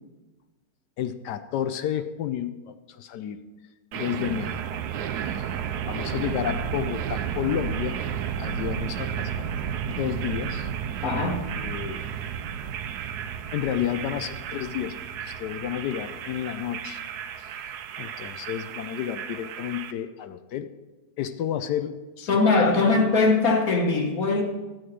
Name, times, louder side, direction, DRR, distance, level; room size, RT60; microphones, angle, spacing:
voice 1, 1.0-3.4 3.9-4.8 5.3-5.5 5.9-8.0 8.4-9.5 9.9-10.7 11.6-12.0 13.5-17.0 17.4-17.6 18.0-20.7 21.2-22.4 22.8-23.1, left 10 dB, 75° left, 10 dB, 1.1 m, -31 dB
sound 1, 3.9-19.9, right 8 dB, 70° right, 1.1 m, -32 dB
voice 2, 11.0-11.4 22.3-24.4, left 3 dB, 55° left, 2 dB, 1.6 m, -21 dB
12.0 x 7.8 x 4.8 m, 1.2 s
omnidirectional pair, 2.0 m